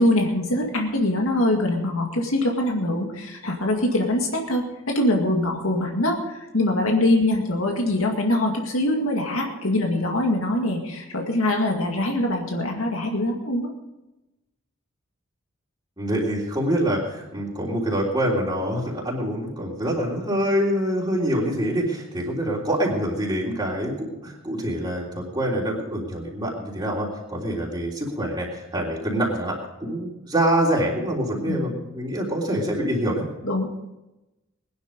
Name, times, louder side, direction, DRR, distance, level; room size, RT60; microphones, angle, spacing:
voice 1, 0.0-13.7 31.5-31.7 33.4-33.7, left 1 dB, 85° left, 1 dB, 2.1 m, -23 dB
voice 2, 16.0-33.2, right 1 dB, 20° right, -4 dB, 3.4 m, -25 dB
20.0 x 11.0 x 5.2 m, 0.98 s
head